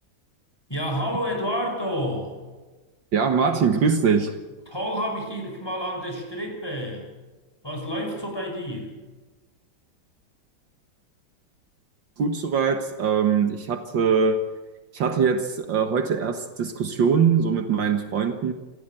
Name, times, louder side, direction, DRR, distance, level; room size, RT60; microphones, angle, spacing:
voice 1, 0.7-2.4 4.7-7.1 7.6-8.9, equal, 10° left, 2 dB, 5.7 m, -29 dB
voice 2, 3.1-4.3 12.2-14.4 14.9-18.5, right 6 dB, 65° right, 7 dB, 2.0 m, -22 dB
27.5 x 15.5 x 9.0 m, 1.2 s
omnidirectional pair, 2.2 m